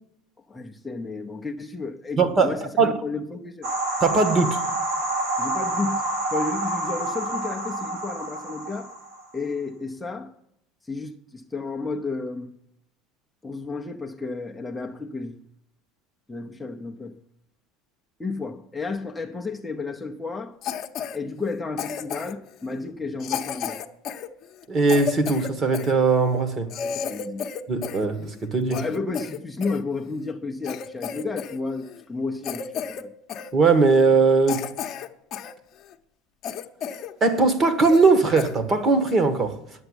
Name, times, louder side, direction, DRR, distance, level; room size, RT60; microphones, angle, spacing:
voice 1, 0.5-3.7 5.4-6.0 6.3-8.9 9.3-10.3 10.8-12.5 13.4-15.4 16.3-17.2 18.2-20.6 21.1-23.8 26.7-27.4 28.7-33.1, left 3 dB, 5° left, 0.8 m, -32 dB
voice 2, 2.2-3.0 4.0-4.6 24.7-26.7 27.7-28.8 33.5-34.7 37.2-39.6, right 4 dB, 30° right, 1.5 m, -20 dB
sound 1, 3.6-9.3, right 1 dB, 55° right, 3.3 m, -28 dB
Cough, 20.6-21.2 21.8-22.5 23.2-25.9 26.4-26.5 26.7-28.1 28.4-29.8 30.3-30.4 30.6-31.6 31.8-32.0 32.4-33.0 33.3-33.5 34.0-34.1 34.5-35.5 35.9-36.0 36.4-37.1 37.4-37.5 37.8-38.1 38.4-38.5 39.1-39.3, left 8 dB, 40° left, 1.0 m, -32 dB
10.5 x 8.0 x 9.8 m
cardioid pair, 140°, 0 cm